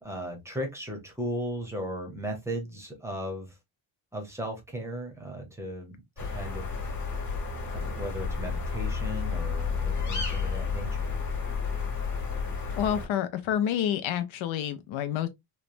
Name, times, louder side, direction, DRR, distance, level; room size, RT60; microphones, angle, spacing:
voice 1, 0.0-3.5 4.1-6.0 6.3-6.7 7.7-11.1, equal, 5° right, 0.7 m, -36 dB
sound 1, 6.2-13.1, left 5 dB, 35° left, 1.1 m, -31 dB
voice 2, 12.8-15.3, left 10 dB, 80° left, 0.5 m, -28 dB
3.1 x 2.1 x 2.5 m
wide cardioid pair, 170°, 47 cm